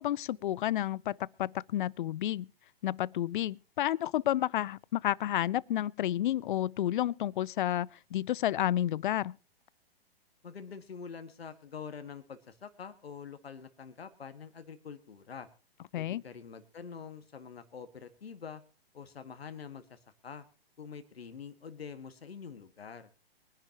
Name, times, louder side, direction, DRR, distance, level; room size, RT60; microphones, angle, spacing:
voice 1, 0.0-2.5 2.8-9.4 15.9-16.2, left 12 dB, 55° left, 0.5 m, -31 dB
voice 2, 10.4-15.5 16.0-18.6 18.9-20.5 20.8-23.1, left 6 dB, 80° left, 1.8 m, -46 dB
24.0 x 10.5 x 2.9 m
hypercardioid pair, 125°, 30 cm